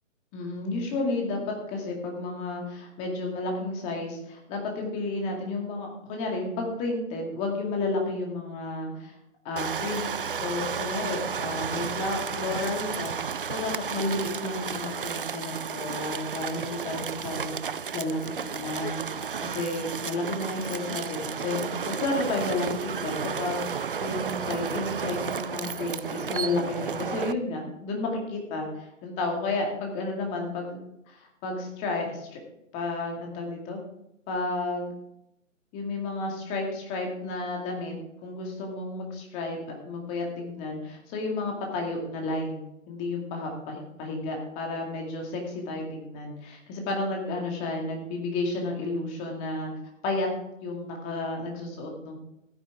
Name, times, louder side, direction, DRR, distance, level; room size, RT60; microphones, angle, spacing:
voice 1, 0.3-1.4 1.7-9.1 9.4-10.0 10.4-19.1 19.4-30.8 31.1-32.4 32.7-33.8 34.3-34.9 35.7-37.9 38.2-49.7 50.0-50.3 50.6-52.2, left 2 dB, 15° left, 1 dB, 2.2 m, -32 dB
sound 1, 9.6-27.3, right 6 dB, 45° right, 0.4 m, -33 dB
14.5 x 9.7 x 3.6 m, 0.82 s
figure-of-eight pair, 145°, 40 cm